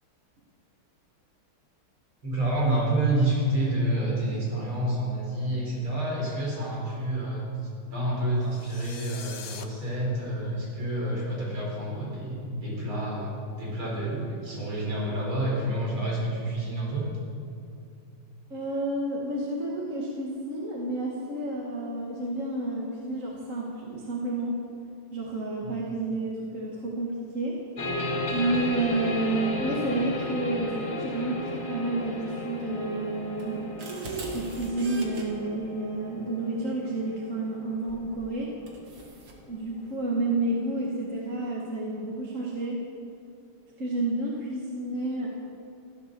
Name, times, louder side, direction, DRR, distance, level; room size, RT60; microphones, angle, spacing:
voice 1, 2.2-7.5 7.9-17.1 17.4-17.5 25.6-25.7 42.4-42.5, right 1 dB, 75° right, -4 dB, 5.4 m, -28 dB
sound 1, 8.5-9.6, left 7 dB, 55° left, 1.0 m, -43 dB
voice 2, 18.5-24.5 25.1-27.6 28.3-33.9 34.3-38.5 39.5-42.8 43.8-45.3, right 2 dB, 40° right, -3 dB, 1.9 m, -30 dB
sound 2, 27.8-39.0, left 1 dB, 85° left, 2.9 m, -35 dB
sound 3, 33.4-35.2 37.9-38.1 38.7-39.4, right 3 dB, 90° right, 2.9 m, -38 dB
14.5 x 13.0 x 6.9 m, 2.7 s
omnidirectional pair, 2.3 m